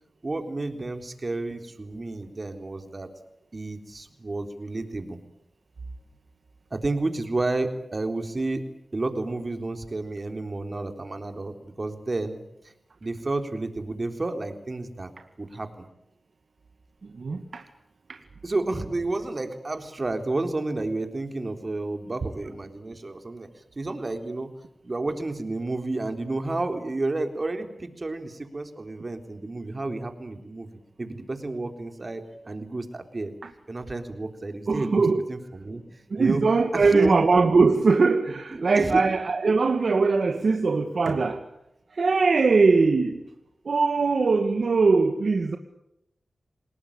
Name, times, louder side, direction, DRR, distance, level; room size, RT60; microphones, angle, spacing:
voice 1, 0.2-3.1 3.5-5.2 6.7-8.6 8.9-12.4 13.0-15.1 15.4-15.9 18.4-23.5 23.8-24.5 24.8-30.7 31.0-33.3 33.7-36.4 36.7-37.2 38.5-39.0, right 2 dB, 40° right, 6 dB, 3.9 m, -31 dB
voice 2, 17.2-17.6 34.7-35.2 36.1-41.4 42.0-43.2 43.7-45.6, right 4 dB, 70° right, 6 dB, 2.1 m, -21 dB
28.5 x 19.0 x 8.9 m, 0.82 s
cardioid pair, 60°, 0 cm